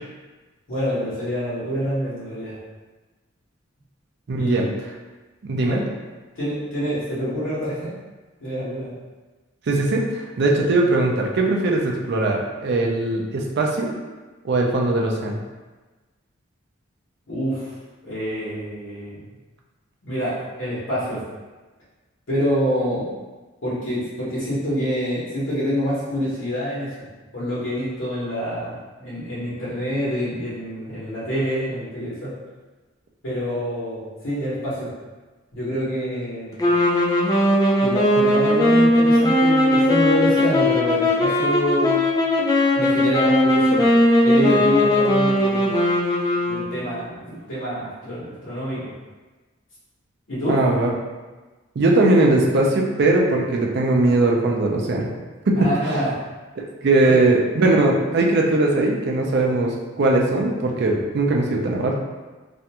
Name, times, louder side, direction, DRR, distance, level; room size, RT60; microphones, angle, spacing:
voice 1, 0.7-2.6 4.4-4.6 5.5-5.8 6.3-7.9 8.4-8.9 10.6-10.7 17.3-17.7 18.0-19.1 20.0-21.2 22.3-23.1 23.6-26.9 27.3-32.4 33.2-34.9 35.5-36.6 37.8-42.0 42.7-43.9 44.2-45.7 46.5-48.9 50.3-50.6 55.6-56.1 57.0-57.2, equal, 75° left, -10 dB, 1.0 m, -26 dB
voice 2, 4.3-4.7 5.4-5.8 9.7-13.9 14.4-15.4 50.5-50.9 51.8-55.1 55.5-56.0 56.8-61.9, right 2 dB, 60° right, 0 dB, 0.4 m, -20 dB
sound 1, 36.6-47.0, left 1 dB, 20° left, 0.3 m, -18 dB
2.4 x 2.2 x 2.8 m, 1.2 s
head